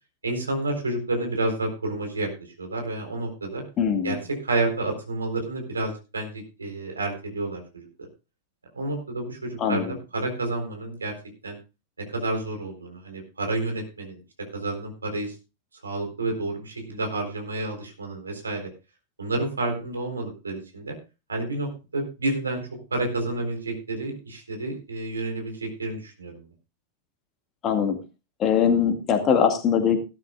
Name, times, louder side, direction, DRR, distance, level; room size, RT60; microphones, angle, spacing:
voice 1, 0.2-3.6 4.0-4.2 4.4-7.9 8.7-11.1 11.4-11.6 12.1-14.2 14.5-15.3 15.8-18.7 19.2-21.0 21.3-22.6 22.9-26.5, right 2 dB, 75° right, 4 dB, 4.1 m, -30 dB
voice 2, 3.8-4.2 9.6-9.9 27.6-28.0 28.4-30.0, left 7 dB, 30° left, 5 dB, 2.2 m, -22 dB
17.0 x 12.5 x 2.4 m, 0.29 s
figure-of-eight pair, 90°, 0 cm